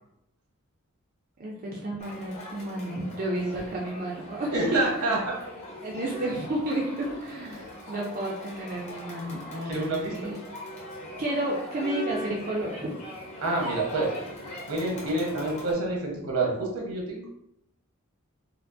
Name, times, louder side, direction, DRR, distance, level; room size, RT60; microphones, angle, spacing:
voice 1, 1.4-5.1 5.8-10.4 11.2-12.9, right 1 dB, 40° right, -3 dB, 0.4 m, -31 dB
Crowd, 2.0-15.7, equal, 30° left, 0.9 m, -41 dB
voice 2, 4.5-5.4 7.5-7.7 9.6-10.4 13.4-14.1 14.7-17.3, right 2 dB, 80° right, -2 dB, 1.1 m, -28 dB
4.4 x 2.1 x 2.5 m, 0.77 s
head